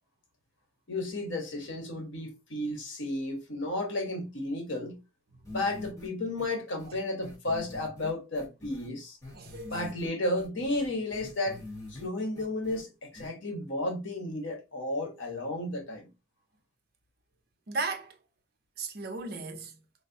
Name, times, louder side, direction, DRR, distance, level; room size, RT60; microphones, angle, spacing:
voice 1, 0.9-5.0 5.5-9.2 9.7-11.6 11.9-16.1, left 1 dB, 75° left, 1.0 m, -33 dB
sound 1, 5.4-6.1 6.4-6.5 6.8-6.9 7.2-8.9 9.2-10.1 10.4-12.1 12.3-12.8 13.1-13.3, left 2 dB, 15° left, 1.3 m, -44 dB
voice 2, 9.3-9.8 17.7-18.2 18.8-19.8, right 3 dB, 50° right, 0.6 m, -36 dB
3.9 x 2.1 x 2.6 m
head